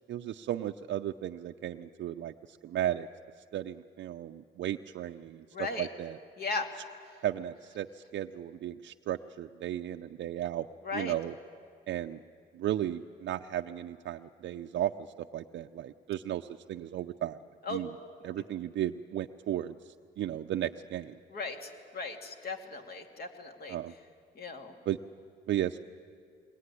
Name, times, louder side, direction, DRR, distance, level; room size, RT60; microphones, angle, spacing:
voice 1, 0.1-3.1 3.5-6.2 7.2-10.7 10.9-11.4 11.9-12.2 12.5-14.9 15.2-17.4 17.7-18.0 18.2-21.2 23.7-23.9 24.9-25.0 25.5-25.8, right 12 dB, 65° right, 6 dB, 0.6 m, -35 dB
voice 2, 5.5-5.9 6.4-6.7 10.8-11.1 17.6-17.8 21.3-23.8 24.4-24.7, left 3 dB, 50° left, 4 dB, 2.6 m, -37 dB
22.0 x 19.0 x 9.8 m, 2.2 s
cardioid pair, 90°, 20 cm